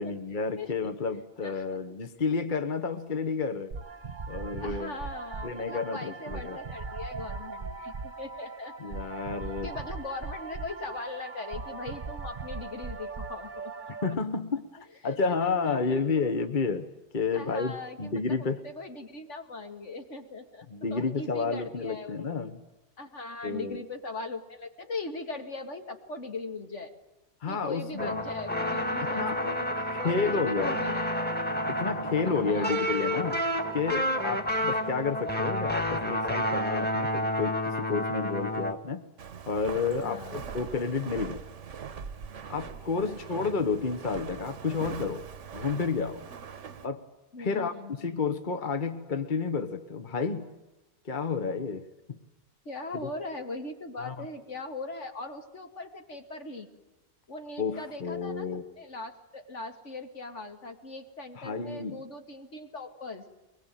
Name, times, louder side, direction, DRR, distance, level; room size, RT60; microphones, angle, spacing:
voice 1, 0.0-3.7 4.3-4.9 5.4-6.6 8.8-9.7 14.0-18.6 20.7-22.6 23.4-23.8 27.4-28.1 29.0-29.4 29.9-30.8 31.7-33.4 33.7-39.0 39.5-41.4 42.5-45.3 45.5-46.2 46.8-47.0 47.4-50.5 51.0-52.2 53.0-53.1 54.0-54.2 57.6-58.6 61.4-62.0, left 4 dB, 45° left, 8 dB, 1.4 m, -31 dB
voice 2, 0.6-0.9 1.4-1.9 4.6-9.0 9.6-13.9 15.0-16.0 17.3-18.1 18.6-22.3 23.0-26.9 27.5-31.2 32.2-32.9 40.0-40.4 43.0-43.5 47.3-47.9 52.6-56.7 57.3-63.2, left 3 dB, 80° left, 5 dB, 2.7 m, -40 dB
sound 1, 3.7-14.1, right 4 dB, 45° right, 1.2 m, -39 dB
sound 2, 28.0-38.7, equal, 10° left, 1.7 m, -30 dB
Walk footsteps, 39.2-46.9, right 7 dB, 85° right, 1.5 m, -42 dB
23.5 x 22.0 x 9.1 m, 0.99 s
omnidirectional pair, 1.2 m